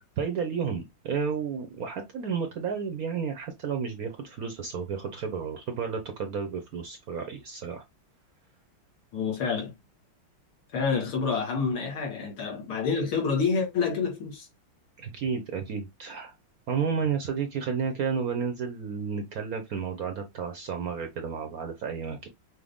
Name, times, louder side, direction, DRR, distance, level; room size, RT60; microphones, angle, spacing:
voice 1, 0.2-7.8 15.0-16.3 16.7-22.3, right 6 dB, 65° right, 0.9 m, -32 dB
voice 2, 9.1-9.7 10.7-14.5, left 5 dB, 85° left, 2.6 m, -28 dB
6.2 x 2.1 x 3.5 m
omnidirectional pair, 2.3 m